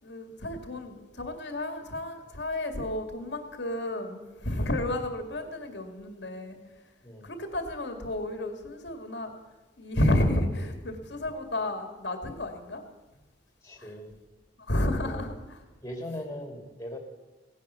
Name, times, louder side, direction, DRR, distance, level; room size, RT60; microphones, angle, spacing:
voice 1, 0.0-6.6 7.2-9.3 9.8-12.8 13.8-13.9 14.7-15.3, left 1 dB, 65° left, 6 dB, 2.2 m, -31 dB
voice 2, 13.6-14.1 14.8-15.3 15.8-17.0, left 1 dB, 15° left, 3 dB, 2.7 m, -39 dB
17.0 x 10.5 x 7.0 m, 1.2 s
head